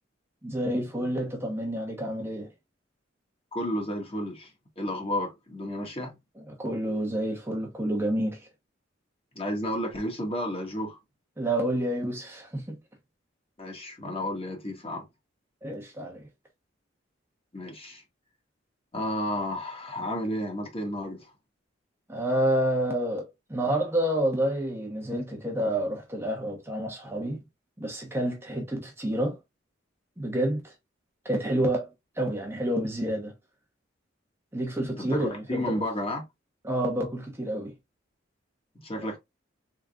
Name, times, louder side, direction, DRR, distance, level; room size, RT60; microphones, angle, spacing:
voice 1, 0.4-2.5 6.4-8.4 11.4-12.7 15.6-16.3 22.1-27.4 27.8-29.4 30.2-30.7 31.2-31.9 32.2-33.3 34.5-35.8 36.6-37.7 39.0-39.1, right 1 dB, 15° right, 0.9 m, -29 dB
voice 2, 3.5-4.5 4.8-6.1 9.3-11.0 13.6-15.0 17.5-18.0 18.9-21.3 35.1-36.2 38.8-39.2, left 1 dB, 30° left, 1.5 m, -32 dB
3.9 x 3.6 x 2.3 m
head